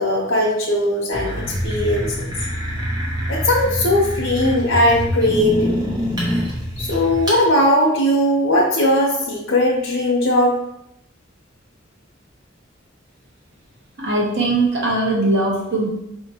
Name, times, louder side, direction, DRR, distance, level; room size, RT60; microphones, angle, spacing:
voice 1, 0.0-2.3 3.3-5.8 6.8-10.6, left 1 dB, 75° left, -4 dB, 0.7 m, -19 dB
sound 1, 1.1-7.4, equal, 20° right, 0.9 m, -25 dB
voice 2, 14.0-15.9, right 2 dB, 60° right, -3 dB, 1.0 m, -20 dB
4.9 x 2.8 x 2.8 m, 0.79 s
head